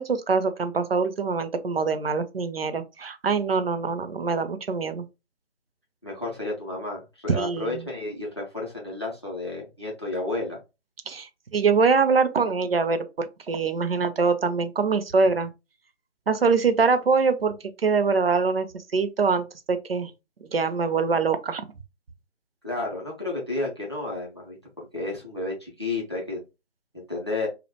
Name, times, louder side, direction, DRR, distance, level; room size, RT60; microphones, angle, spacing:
voice 1, 0.0-5.1 7.4-7.8 11.1-15.5 16.3-17.6 17.8-20.1 20.5-21.6, right 4 dB, 55° right, 0.5 m, -24 dB
voice 2, 6.0-10.6 22.6-26.4 26.9-27.5, left 2 dB, 25° left, 0.5 m, -32 dB
2.3 x 2.1 x 2.9 m
figure-of-eight pair, 155°, 36 cm